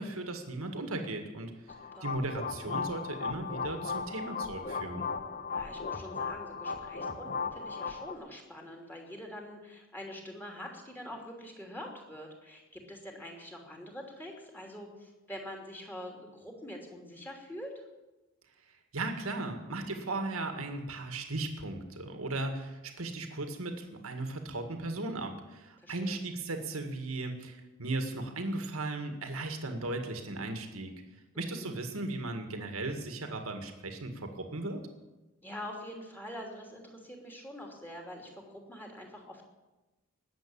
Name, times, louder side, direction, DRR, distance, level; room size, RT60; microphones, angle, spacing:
voice 1, 0.0-1.5 2.0-5.1 18.9-30.9 31.4-34.8, right 2 dB, 85° right, 5 dB, 2.0 m, -36 dB
sound 1, 1.7-8.1, left 5 dB, 40° left, 1.0 m, -37 dB
voice 2, 5.5-17.7 25.8-26.2 31.3-31.7 35.4-39.5, equal, 10° left, 1 dB, 2.9 m, -45 dB
19.5 x 7.9 x 8.8 m, 1.1 s
head